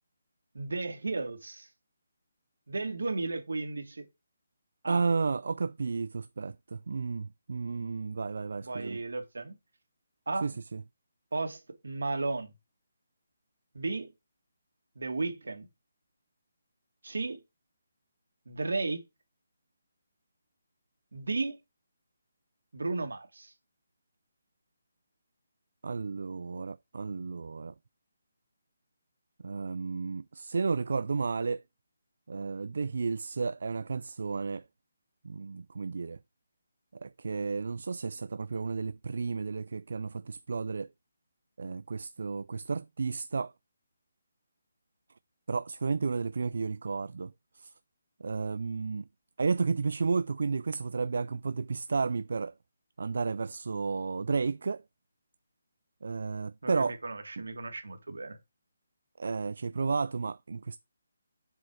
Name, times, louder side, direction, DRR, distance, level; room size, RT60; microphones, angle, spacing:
voice 1, 0.5-1.7 2.7-4.1 4.8-5.0 8.6-9.5 10.3-10.5 11.3-12.5 13.7-14.1 15.0-15.7 17.0-17.4 18.5-19.0 21.1-21.6 22.7-23.5 56.6-58.4, right 3 dB, 85° right, 2.2 m, -34 dB
voice 2, 4.9-9.0 10.4-10.8 25.8-27.7 29.4-31.6 32.3-34.7 35.2-36.2 36.9-40.9 41.6-43.5 45.5-47.7 48.2-49.1 49.4-52.5 53.0-54.8 56.0-57.0 57.4-57.5 59.2-60.8, right 4 dB, 70° right, 0.3 m, -32 dB
7.5 x 4.8 x 4.8 m
hypercardioid pair, 165°, 0 cm